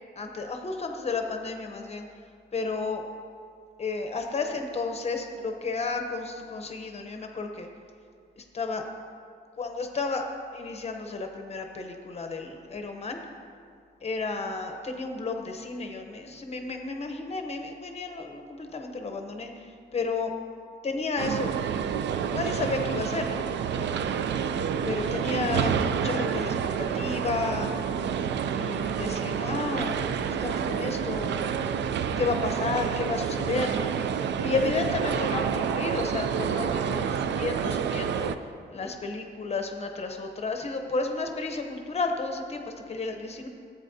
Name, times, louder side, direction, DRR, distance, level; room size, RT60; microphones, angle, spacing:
voice 1, 0.2-2.0 2.5-3.0 3.8-7.7 8.4-8.8 9.5-13.2 14.0-20.3 20.8-21.5 22.3-23.4 23.8-23.9 24.8-27.7 28.5-31.9 32.2-33.9 34.4-38.3 38.7-43.5, left 3 dB, 35° left, 4 dB, 0.8 m, -32 dB
sound 1, 21.2-38.4, right 7 dB, 80° right, 0.4 m, -28 dB
14.5 x 8.3 x 2.7 m, 2.3 s
wide cardioid pair, 150°, 18 cm